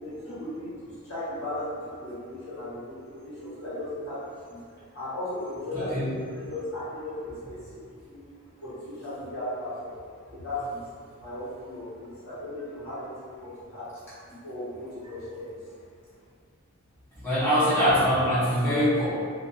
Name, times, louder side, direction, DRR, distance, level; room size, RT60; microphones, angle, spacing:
voice 1, 0.0-4.6 4.9-7.6 7.9-8.2 8.6-10.0 10.3-10.8 11.2-15.6, left 1 dB, 80° left, -11 dB, 1.2 m, -36 dB
voice 2, 5.7-6.1 17.2-19.1, equal, 10° left, -14 dB, 0.8 m, -23 dB
2.4 x 2.3 x 2.6 m, 2.2 s
head